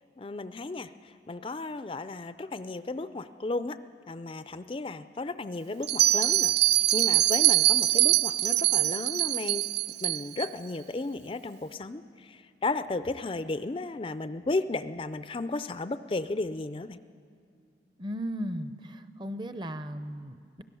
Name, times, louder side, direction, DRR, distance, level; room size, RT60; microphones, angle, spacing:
voice 1, 0.2-0.9 1.3-3.8 4.1-6.5 6.9-9.6 10.0-17.0, left 2 dB, 30° left, 12 dB, 0.4 m, -34 dB
Bell, 5.8-10.5, right 14 dB, 65° right, 0.5 m, -23 dB
voice 2, 18.0-20.6, equal, 25° right, 11 dB, 0.7 m, -36 dB
24.0 x 17.5 x 7.0 m, 2.3 s
head